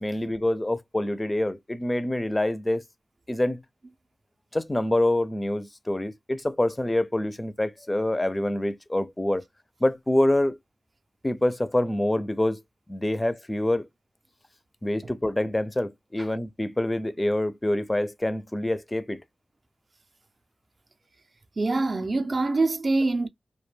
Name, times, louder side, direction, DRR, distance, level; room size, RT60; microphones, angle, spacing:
voice 1, 0.0-2.8 3.3-3.6 4.5-9.4 9.8-10.6 11.2-12.6 12.9-13.9 14.8-19.2, left 1 dB, 20° left, 0.4 m, -26 dB
voice 2, 21.6-23.3, right 3 dB, 55° right, 0.4 m, -24 dB
2.2 x 2.2 x 3.1 m
cardioid pair, 45°, 0 cm